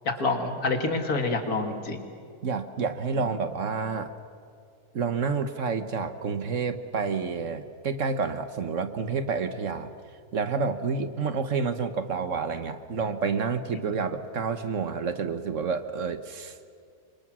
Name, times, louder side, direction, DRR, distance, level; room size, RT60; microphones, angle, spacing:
voice 1, 0.0-2.1, left 3 dB, 75° left, 5 dB, 2.6 m, -27 dB
voice 2, 2.4-4.1 4.9-9.9 10.3-16.7, right 5 dB, 55° right, 10 dB, 1.5 m, -29 dB
28.5 x 24.5 x 6.2 m, 2.3 s
omnidirectional pair, 1.6 m